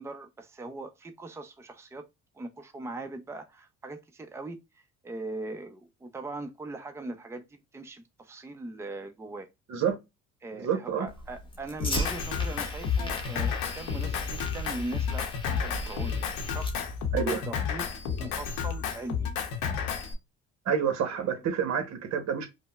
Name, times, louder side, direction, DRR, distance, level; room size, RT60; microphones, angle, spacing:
voice 1, 0.0-2.1 2.3-4.6 5.0-9.5 10.4-16.7 17.2-17.9 18.2-19.3 21.2-21.3, right 2 dB, 10° right, 0.5 m, -40 dB
voice 2, 10.5-11.1 17.1-17.4 20.6-22.5, right 7 dB, 55° right, 0.9 m, -28 dB
Fire, 11.1-17.1, equal, 15° left, 0.9 m, -37 dB
Drum kit, 11.8-20.1, left 7 dB, 85° left, 0.8 m, -31 dB
5.1 x 2.1 x 2.3 m
supercardioid pair, 75°, 33 cm